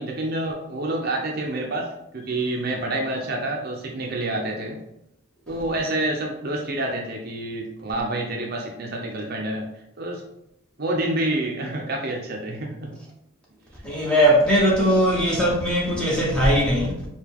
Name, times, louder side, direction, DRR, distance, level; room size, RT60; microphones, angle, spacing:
voice 1, 0.0-4.8 5.5-9.7 10.0-10.2 10.8-13.0, right 1 dB, 45° right, 0.5 m, -28 dB
voice 2, 13.8-17.1, equal, 5° left, 0.9 m, -20 dB
4.9 x 2.2 x 3.4 m
head